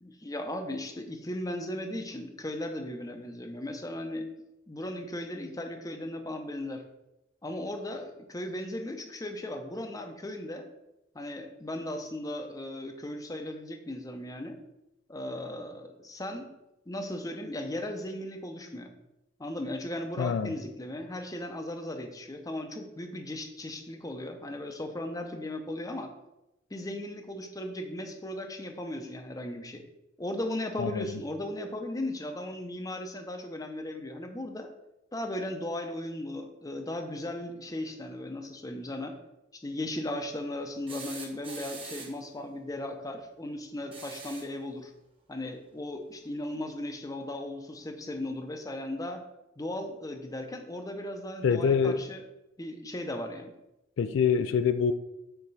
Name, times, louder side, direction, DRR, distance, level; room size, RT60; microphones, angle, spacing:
voice 1, 0.0-4.2 4.7-6.8 7.4-10.7 11.1-14.6 15.1-16.5 16.9-18.9 19.4-26.1 26.7-29.8 30.2-34.7 35.1-39.1 39.6-44.9 45.3-49.2 49.6-52.2 52.6-53.5, left 1 dB, 15° left, 5 dB, 0.6 m, -37 dB
voice 2, 20.2-20.5 30.8-31.2 51.4-52.0 54.0-54.9, left 6 dB, 65° left, 10 dB, 0.3 m, -25 dB
sound 1, 40.9-42.3 43.8-44.6 46.3-46.4 47.8-47.9, right 4 dB, 25° right, 1.1 m, -44 dB
6.7 x 4.3 x 4.1 m, 0.91 s
head